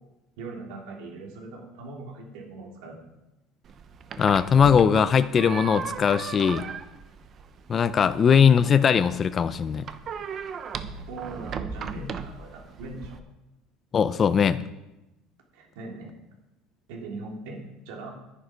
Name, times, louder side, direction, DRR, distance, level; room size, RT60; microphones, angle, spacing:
voice 1, 0.4-3.0 8.5-8.7 11.1-13.2 15.5-16.2 16.9-18.1, right 3 dB, 80° right, 0 dB, 3.2 m, -40 dB
sound 1, 3.6-13.2, right 6 dB, 30° right, 0.7 m, -37 dB
voice 2, 4.2-6.6 7.7-9.8 12.0-12.1 13.9-14.6, left 7 dB, 25° left, 13 dB, 0.4 m, -20 dB
10.5 x 9.8 x 5.1 m, 0.97 s
cardioid pair, 165°, 0 cm